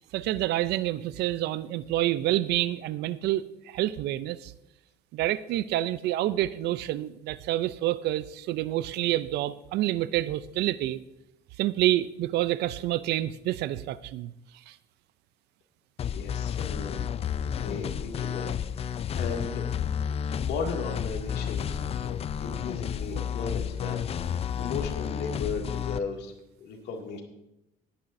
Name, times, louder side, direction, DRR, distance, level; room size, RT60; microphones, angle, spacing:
voice 1, 0.1-4.5 5.1-11.0 11.6-14.3 14.7-14.8, right 14 dB, 80° right, 16 dB, 0.4 m, -28 dB
sound 1, 16.0-26.0, left 8 dB, 35° left, 0.4 m, -31 dB
voice 2, 16.1-17.3 17.5-19.7 20.3-26.3 26.6-27.2, left 5 dB, 75° left, 2 dB, 2.1 m, -36 dB
18.5 x 9.9 x 2.6 m, 0.87 s
cardioid pair, 110°, 17 cm